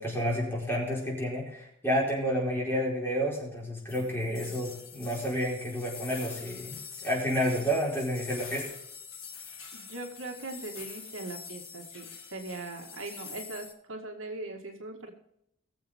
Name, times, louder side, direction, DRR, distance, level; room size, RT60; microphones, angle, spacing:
voice 1, 0.0-8.7, equal, 10° left, -4 dB, 4.5 m, -30 dB
sound 1, 3.9-13.7, left 6 dB, 75° left, 3.2 m, -45 dB
voice 2, 9.7-15.1, right 2 dB, 70° right, 2 dB, 2.0 m, -40 dB
20.5 x 7.4 x 3.7 m, 0.77 s
head